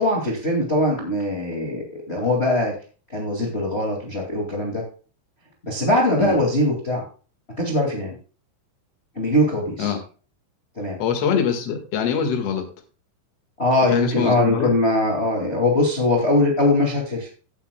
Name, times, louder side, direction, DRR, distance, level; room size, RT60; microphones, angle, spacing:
voice 1, 0.0-2.8 3.1-4.8 5.6-7.0 7.6-8.2 9.1-9.9 10.7-11.0 13.6-17.3, left 1 dB, 80° left, -1 dB, 0.5 m, -21 dB
voice 2, 11.0-12.6 13.9-14.7, left 7 dB, 60° left, 5 dB, 1.7 m, -23 dB
16.5 x 8.2 x 2.2 m, 0.37 s
omnidirectional pair, 5.4 m